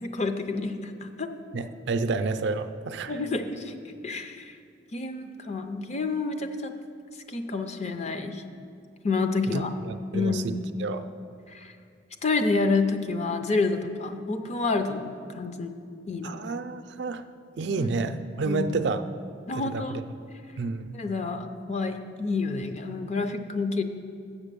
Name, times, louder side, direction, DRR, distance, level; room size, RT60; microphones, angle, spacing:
voice 1, 0.0-1.3 3.1-3.7 4.0-4.5 4.9-6.7 7.3-8.4 9.0-9.7 10.1-10.5 11.5-11.7 12.2-15.7 16.1-16.4 17.8-17.9 18.4-18.8 19.5-20.0 20.9-23.8, left 3 dB, 35° left, 7 dB, 0.5 m, -29 dB
voice 2, 1.5-3.2 9.5-11.1 16.2-17.2 17.6-19.0 19.6-20.0 20.6-21.0, right 3 dB, 65° right, 10 dB, 0.4 m, -30 dB
7.2 x 7.1 x 6.7 m, 2.4 s
head